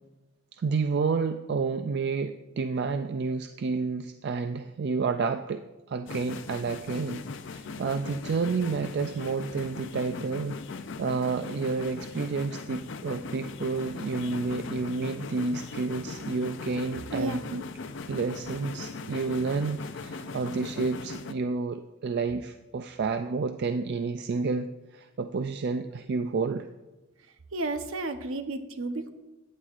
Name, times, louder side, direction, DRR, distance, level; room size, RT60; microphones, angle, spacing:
voice 1, 0.5-10.6 11.0-17.6 18.1-26.7, right 4 dB, 50° right, 9 dB, 0.3 m, -30 dB
sound 1, 6.1-21.3, left 4 dB, 55° left, 0.5 m, -39 dB
voice 2, 27.5-29.1, right 2 dB, 70° right, 8 dB, 0.8 m, -32 dB
14.5 x 9.5 x 2.5 m, 1.1 s
head